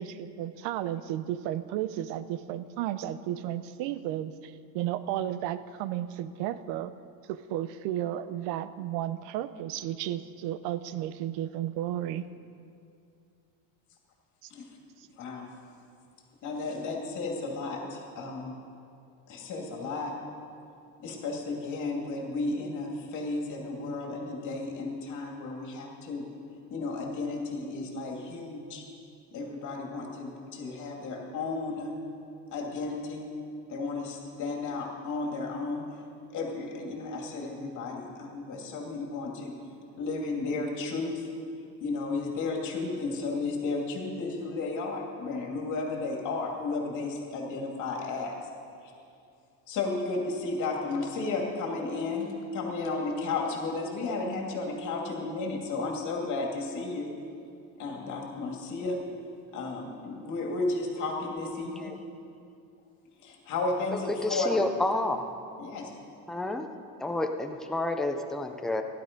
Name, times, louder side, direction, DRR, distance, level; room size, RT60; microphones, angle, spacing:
voice 1, 0.0-6.9 7.3-12.3 14.4-14.5, right 12 dB, 80° right, 14 dB, 0.7 m, -33 dB
voice 2, 15.2-15.5 16.4-18.6 19.3-20.1 21.0-26.2 26.7-28.8 29.3-31.9 32.5-33.3 33.7-35.9 36.3-39.5 40.0-41.3 41.8-48.4 49.7-57.1 57.8-59.0 59.5-61.9 63.2-64.6 65.6-65.9, left 3 dB, 45° left, 0 dB, 2.4 m, -33 dB
voice 3, 63.9-65.2 66.3-66.7 67.0-68.8, left 2 dB, ahead, 5 dB, 0.3 m, -30 dB
15.5 x 11.5 x 5.2 m, 2.5 s
cardioid pair, 170°, 42 cm